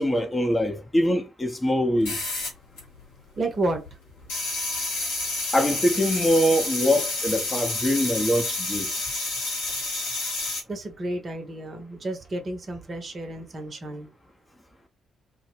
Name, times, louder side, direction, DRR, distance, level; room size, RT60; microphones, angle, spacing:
voice 1, 0.0-2.2 5.5-9.0, equal, 20° left, 0.6 m, -23 dB
sound 1, 2.0-3.3 3.5-10.6, left 2 dB, 70° left, 1.0 m, -29 dB
voice 2, 3.4-3.8 10.7-14.1, right 2 dB, 40° right, 0.7 m, -31 dB
2.1 x 2.0 x 3.1 m
figure-of-eight pair, 40°, 0 cm